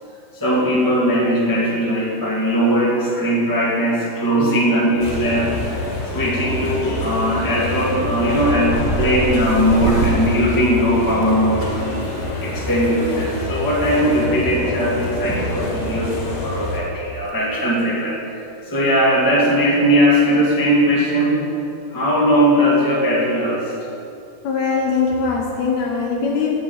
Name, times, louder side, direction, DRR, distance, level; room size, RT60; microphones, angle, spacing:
voice 1, 0.3-12.0 12.4-18.2 18.6-21.4 21.9-23.7, equal, 10° left, -5 dB, 1.5 m, -19 dB
sound 1, 5.0-16.8, left 2 dB, 85° left, 3.4 m, -26 dB
sound 2, 5.0-5.5 5.8-6.4 6.7-7.0 7.3-11.7 13.1-13.2 14.5-15.3 15.6-15.8 16.3-16.4 16.7-16.8 17.1-17.3 17.6-17.7 19.2-19.5, right 8 dB, 85° right, 2.1 m, -30 dB
voice 2, 24.4-26.6, left 5 dB, 70° left, 0 dB, 2.1 m, -21 dB
11.0 x 6.2 x 8.1 m, 2.7 s
omnidirectional pair, 3.6 m